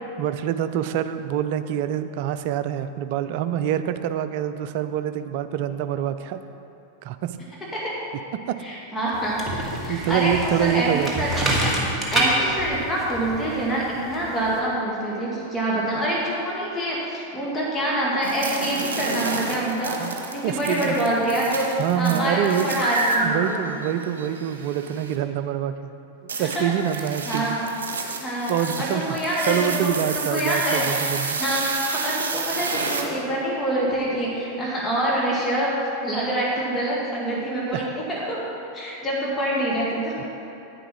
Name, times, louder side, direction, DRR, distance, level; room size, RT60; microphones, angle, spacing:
voice 1, 0.2-6.4 7.0-7.4 8.3-8.6 9.9-11.3 20.0-20.1 20.4-21.0 21.8-22.7 23.2-26.0 26.4-27.6 28.5-29.1 29.5-31.4 37.7-37.8 40.2-40.3, right 10 dB, 50° right, 11 dB, 0.5 m, -26 dB
voice 2, 8.6-11.3 12.1-23.6 26.4-27.6 28.2-28.5 28.8-29.9 30.1-30.9 31.4-35.8 36.0-38.4 38.7-40.2, right 1 dB, 15° left, -5 dB, 2.3 m, -26 dB
sound 1, 9.1-14.6, right 1 dB, 15° right, 2.0 m, -27 dB
sound 2, 18.2-25.2 26.3-33.0, right 4 dB, 65° right, 1.2 m, -30 dB
10.0 x 9.6 x 4.5 m, 3.0 s
figure-of-eight pair, 90°, 0 cm